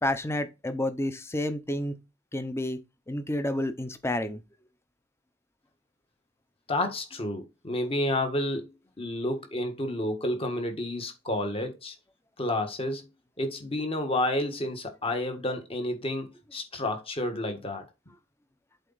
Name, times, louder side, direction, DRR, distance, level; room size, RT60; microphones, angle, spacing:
voice 1, 0.0-2.0 2.3-2.8 3.1-4.4, left 1 dB, 15° left, 0.8 m, -30 dB
voice 2, 6.7-8.7 9.0-11.9 12.4-13.0 13.4-17.8, left 1 dB, 30° left, 1.5 m, -30 dB
7.9 x 4.1 x 4.0 m
head